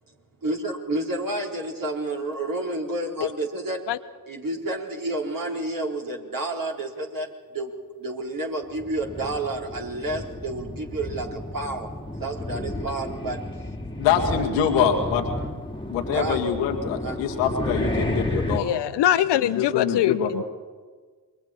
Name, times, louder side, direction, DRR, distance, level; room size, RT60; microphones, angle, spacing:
voice 1, 0.4-3.8 4.3-7.3 7.5-7.7 8.0-13.4 16.1-16.4 17.0-17.2, right 2 dB, 45° right, -1 dB, 4.4 m, -30 dB
sound 1, 8.7-18.6, left 1 dB, 10° left, 2.4 m, -31 dB
voice 2, 14.0-15.2 15.9-18.8 19.4-20.3, left 8 dB, 85° left, 1 dB, 2.0 m, -24 dB
voice 3, 18.6-20.4, left 11 dB, 60° left, 13 dB, 0.9 m, -23 dB
28.0 x 23.5 x 4.5 m, 1.5 s
hypercardioid pair, 40°, 46 cm